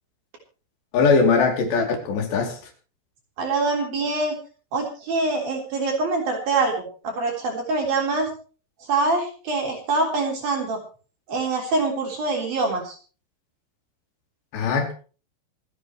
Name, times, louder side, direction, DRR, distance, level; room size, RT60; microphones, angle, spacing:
voice 1, 0.9-2.6 14.5-14.9, left 4 dB, 70° left, 3 dB, 5.0 m, -20 dB
voice 2, 3.4-4.3 4.7-6.7 7.0-8.3 8.9-10.8 11.3-13.0, right 3 dB, 55° right, 1 dB, 5.0 m, -24 dB
27.0 x 9.3 x 3.1 m, 0.37 s
omnidirectional pair, 5.3 m